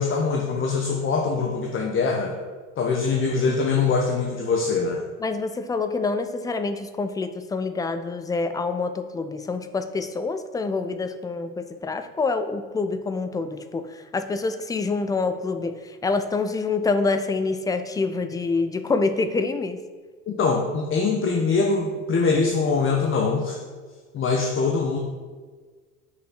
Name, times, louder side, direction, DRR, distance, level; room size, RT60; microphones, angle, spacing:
voice 1, 0.0-2.4 2.8-5.0 20.3-23.6 24.1-25.0, left 4 dB, 30° left, 0 dB, 1.0 m, -23 dB
voice 2, 5.2-19.8, left 3 dB, 10° left, 9 dB, 0.4 m, -26 dB
6.4 x 5.5 x 5.6 m, 1.5 s
figure-of-eight pair, 65°, 42 cm